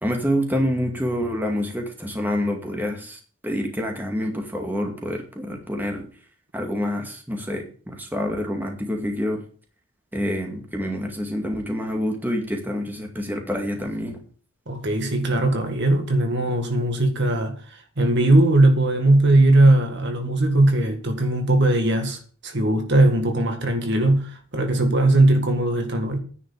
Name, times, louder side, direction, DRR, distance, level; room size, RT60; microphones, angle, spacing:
voice 1, 0.0-6.0 6.5-9.4 10.1-14.2, equal, 10° right, 2.3 m, -27 dB
voice 2, 14.7-17.6 18.0-26.2, right 1 dB, 55° right, 1.8 m, -19 dB
10.0 x 6.3 x 8.6 m
head